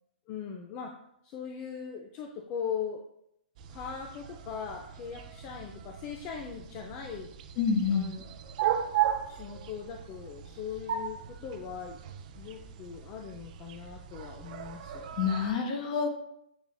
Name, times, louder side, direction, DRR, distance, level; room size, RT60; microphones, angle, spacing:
voice 1, 0.3-0.9 1.2-3.0 3.7-7.3 7.9-8.5 9.3-12.0 12.4-15.0, left 7 dB, 30° left, 2 dB, 0.4 m, -40 dB
sound 1, 3.6-15.5, right 10 dB, 50° right, 0.4 m, -37 dB
voice 2, 7.6-8.1 15.2-16.1, left 6 dB, 50° left, 4 dB, 0.9 m, -27 dB
7.1 x 2.9 x 2.2 m, 0.76 s
hypercardioid pair, 125°, 5 cm